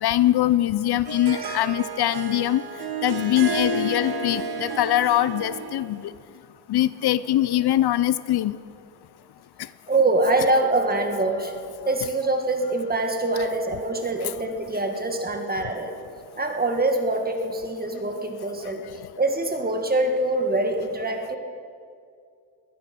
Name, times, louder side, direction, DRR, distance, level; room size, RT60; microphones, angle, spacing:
voice 1, 0.0-2.6 3.0-6.1 6.7-8.6, left 13 dB, 80° left, 17 dB, 0.6 m, -22 dB
Harp, 0.7-6.0, right 3 dB, 75° right, 1.6 m, -31 dB
voice 2, 9.9-11.5 11.9-16.0 16.4-18.8 19.2-21.4, right 2 dB, 25° right, 4 dB, 1.7 m, -24 dB
19.5 x 12.0 x 6.1 m, 2.3 s
wide cardioid pair, 120°, 38 cm